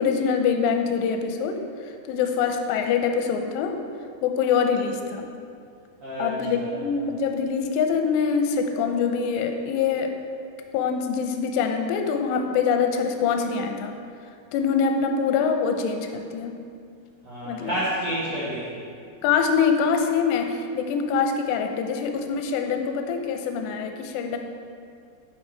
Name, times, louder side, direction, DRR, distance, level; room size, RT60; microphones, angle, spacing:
voice 1, 0.0-1.6 2.1-3.8 4.2-5.3 6.2-10.1 10.7-14.0 14.5-16.6 17.5-17.8 19.2-24.4, left 6 dB, 85° left, 5 dB, 2.8 m, -24 dB
voice 2, 6.0-6.8 17.2-18.8, right 1 dB, 55° right, -11 dB, 1.9 m, -29 dB
8.4 x 5.9 x 4.6 m, 2.3 s
omnidirectional pair, 5.0 m